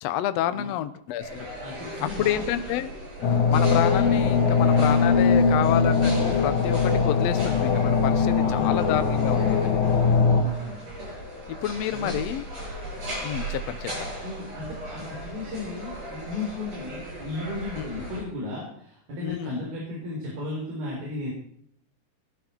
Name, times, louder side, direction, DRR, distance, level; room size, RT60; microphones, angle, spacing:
voice 1, 0.0-1.5 2.0-2.9 3.5-9.7 11.5-12.5 13.2-14.1 19.2-19.7, left 12 dB, 85° left, 11 dB, 1.5 m, -29 dB
sound 1, 1.2-18.2, right 1 dB, 60° right, 8.6 m, -37 dB
voice 2, 1.6-2.6 8.4-8.8 10.2-10.8 11.9-12.4 14.2-21.3, left 2 dB, 85° right, -3 dB, 5.9 m, -35 dB
sound 2, 3.2-10.4, left 5 dB, 60° left, 2.8 m, -21 dB
19.0 x 12.0 x 4.5 m, 0.65 s
omnidirectional pair, 4.1 m